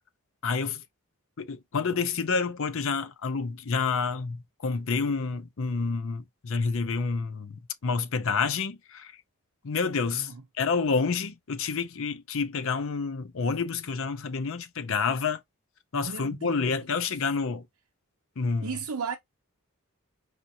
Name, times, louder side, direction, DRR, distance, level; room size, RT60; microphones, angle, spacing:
voice 1, 0.4-0.8 1.4-9.1 9.6-10.3 10.6-15.4 15.9-17.6 18.4-18.7, left 5 dB, 65° left, 0.6 m, -29 dB
voice 2, 15.9-16.7 18.6-19.2, right 5 dB, 90° right, 0.6 m, -35 dB
4.9 x 2.6 x 2.8 m
head